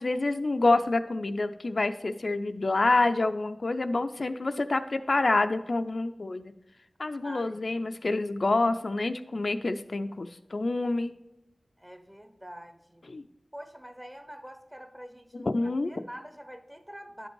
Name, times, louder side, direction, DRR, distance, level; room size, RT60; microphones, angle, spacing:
voice 1, 0.0-6.5 7.0-11.1 13.1-13.3 15.3-16.0, left 2 dB, 60° left, 8 dB, 0.4 m, -27 dB
voice 2, 7.2-7.8 11.8-13.1 13.5-15.5 15.9-17.3, equal, 10° right, 9 dB, 0.8 m, -45 dB
10.0 x 5.2 x 4.6 m, 0.90 s
wide cardioid pair, 60°, 0 cm